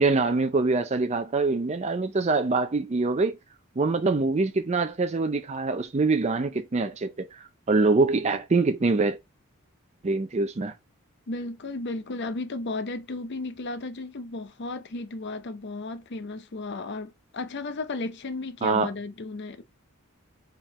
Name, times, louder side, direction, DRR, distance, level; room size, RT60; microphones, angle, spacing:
voice 1, 0.0-3.4 3.8-7.3 7.7-9.2 10.0-10.7 18.6-18.9, right 3 dB, 30° right, 0.5 m, -24 dB
voice 2, 11.3-19.6, left 3 dB, 50° left, 0.6 m, -34 dB
4.5 x 3.7 x 3.0 m
head